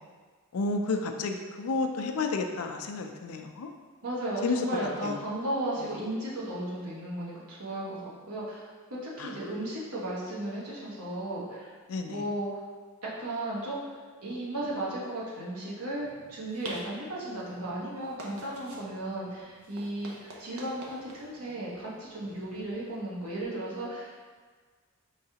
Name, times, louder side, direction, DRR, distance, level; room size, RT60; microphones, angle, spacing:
voice 1, 0.5-3.7 4.4-4.7 5.0-5.2 9.2-9.3 11.9-12.2, left 3 dB, 70° left, 5 dB, 0.4 m, -31 dB
voice 2, 4.0-8.6 8.9-11.7 12.1-12.6 13.2-13.8 14.2-24.2, right 1 dB, 85° right, -6 dB, 1.1 m, -35 dB
sound 1, 15.9-23.4, right 2 dB, 70° right, 0.6 m, -48 dB
4.7 x 3.2 x 2.8 m, 1.5 s
head